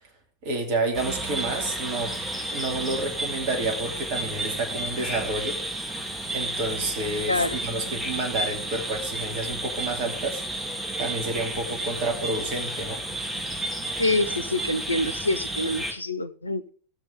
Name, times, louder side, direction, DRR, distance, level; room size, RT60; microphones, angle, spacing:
voice 1, 0.4-2.2 2.5-5.6 6.3-10.4 11.0-13.0, right 2 dB, 45° right, 2.7 m, -29 dB
sound 1, 0.9-15.9, right 1 dB, 10° right, 2.7 m, -32 dB
voice 2, 7.3-7.6 14.0-16.7, left 2 dB, 80° left, 0.7 m, -26 dB
17.5 x 6.8 x 3.5 m
figure-of-eight pair, 90°, 0 cm